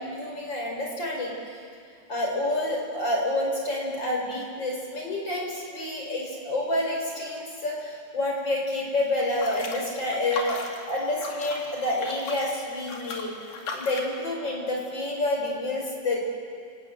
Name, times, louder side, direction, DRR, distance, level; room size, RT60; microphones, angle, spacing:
voice 1, 0.0-1.4 2.1-10.6 10.9-13.3 13.7-16.2, left 1 dB, 30° left, -1 dB, 5.6 m, -28 dB
sound 1, 9.1-14.2, left 4 dB, 75° left, 4.5 m, -37 dB
29.5 x 18.5 x 9.1 m, 2.3 s
omnidirectional pair, 4.5 m